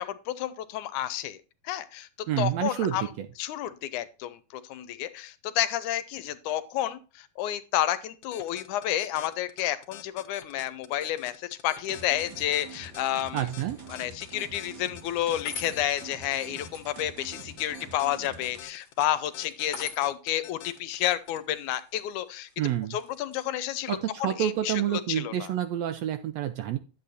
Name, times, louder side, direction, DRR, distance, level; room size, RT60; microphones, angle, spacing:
voice 1, 0.0-1.4 1.6-3.1 3.4-13.5 13.9-22.5 22.9-25.5, left 12 dB, 80° left, 14 dB, 2.1 m, -30 dB
voice 2, 2.3-3.3 13.3-13.8 22.6-23.0 23.9-26.8, right 11 dB, 75° right, 9 dB, 1.6 m, -28 dB
sound 1, 8.2-21.4, left 11 dB, 65° left, 1.8 m, -46 dB
sound 2, 11.6-24.0, left 4 dB, 40° left, 2.1 m, -49 dB
sound 3, 11.9-18.6, right 4 dB, 50° right, 1.6 m, -46 dB
10.5 x 8.2 x 2.6 m, 0.33 s
omnidirectional pair, 3.6 m